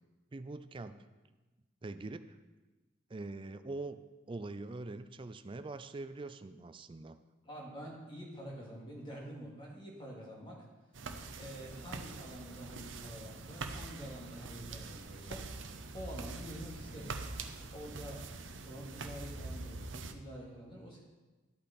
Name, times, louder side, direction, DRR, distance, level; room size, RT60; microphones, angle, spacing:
voice 1, 0.3-1.1 1.8-2.4 3.1-4.0 4.3-7.2, right 2 dB, 25° right, 11 dB, 0.4 m, -43 dB
voice 2, 7.4-10.6 11.4-17.1 17.7-18.2 18.6-21.0, equal, 25° left, -3 dB, 2.4 m, -47 dB
sound 1, 10.9-20.1, right 3 dB, 65° right, 0.8 m, -44 dB
12.0 x 8.5 x 4.3 m, 1.2 s
head